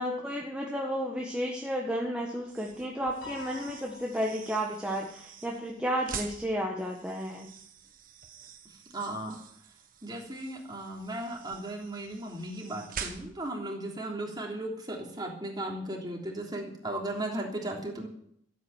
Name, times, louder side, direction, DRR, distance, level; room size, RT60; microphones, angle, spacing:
voice 1, 0.0-7.5, equal, 5° right, -2 dB, 1.6 m, -32 dB
sound 1, 2.4-13.6, right 6 dB, 45° right, 1.6 m, -46 dB
Piano, 3.2-4.7, left 5 dB, 70° left, 4.7 m, -46 dB
voice 2, 8.9-9.4 10.0-18.1, right 1 dB, 20° right, 0 dB, 3.3 m, -36 dB
15.0 x 8.5 x 9.1 m, 0.68 s
head